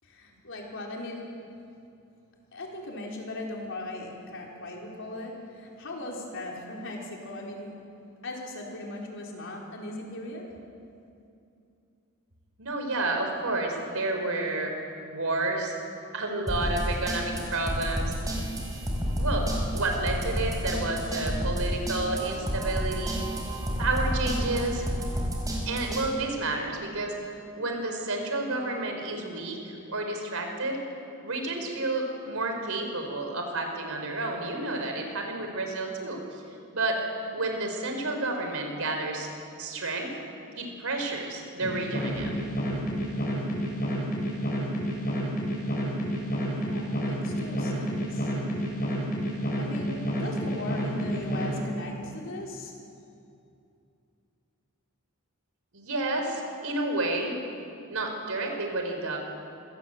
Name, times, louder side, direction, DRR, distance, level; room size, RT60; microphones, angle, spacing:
voice 1, 0.0-1.2 2.5-7.7 8.2-10.4 46.3-48.3 49.6-52.7, left 2 dB, 60° left, -1 dB, 4.3 m, -39 dB
voice 2, 12.6-14.7 15.1-15.8 16.1-18.1 19.1-23.2 23.8-24.8 25.6-27.2 27.5-30.8 31.2-36.4 36.7-37.0 37.3-39.3 39.6-40.1 40.6-42.3 55.7-57.4 57.9-59.2, right 2 dB, 75° right, 3 dB, 4.4 m, -30 dB
sound 1, 16.5-26.1, equal, 15° right, 4.6 m, -30 dB
sound 2, 41.6-51.5, equal, 40° left, 6.4 m, -29 dB
26.0 x 17.5 x 7.9 m, 2.6 s
head